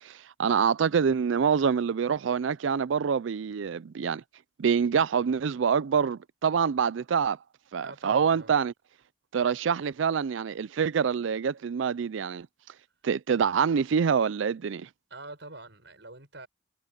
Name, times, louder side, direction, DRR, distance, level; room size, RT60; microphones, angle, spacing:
voice 1, 0.0-4.2 4.6-7.4 7.7-8.7 9.3-12.5 13.0-14.9, right 6 dB, 85° right, 0.4 m, -26 dB
voice 2, 7.8-8.5 15.1-16.5, right 2 dB, 70° right, 6.1 m, -45 dB
head